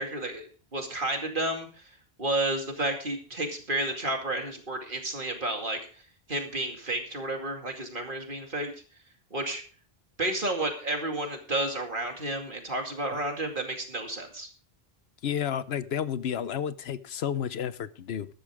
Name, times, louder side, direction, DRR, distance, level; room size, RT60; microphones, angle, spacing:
voice 1, 0.0-1.7 2.2-6.0 6.3-8.7 9.3-9.6 10.2-14.5, right 2 dB, 55° right, 2.5 m, -31 dB
voice 2, 15.2-18.3, left 9 dB, 80° left, 1.0 m, -31 dB
13.5 x 12.5 x 3.6 m
omnidirectional pair, 1.0 m